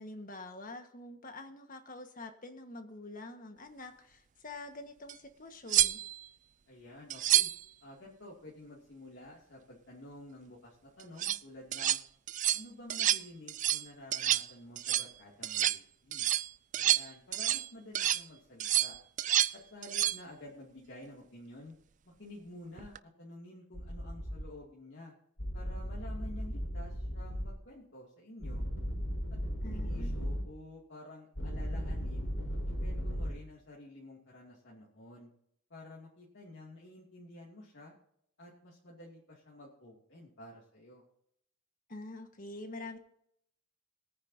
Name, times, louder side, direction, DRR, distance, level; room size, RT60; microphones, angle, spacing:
voice 1, 0.0-6.0 29.6-30.1 41.9-43.0, left 2 dB, 40° left, 6 dB, 1.6 m, -46 dB
sound 1, 5.1-5.2 5.7-6.3 7.1-7.6 11.0-11.4 11.7-12.0 12.3-12.6 12.9-13.2 13.5-13.9 14.1-14.5 14.8-15.1 15.4-15.8 16.1-17.7 18.0-18.2 18.6-19.6 19.8-20.2 22.8-23.0, right 12 dB, 40° right, 0.4 m, -29 dB
voice 2, 6.7-7.5 7.8-12.0 12.5-16.3 16.7-19.0 19.5-21.7 22.0-25.1 25.5-28.6 29.3-32.3 32.6-35.3 35.7-37.9 38.4-41.0, left 1 dB, 60° left, -4 dB, 2.7 m, -51 dB
sound 2, 23.7-24.4 25.4-27.5 28.4-30.4 31.4-33.3, equal, 85° left, 5.1 m, -36 dB
21.5 x 9.6 x 2.8 m, 0.72 s
head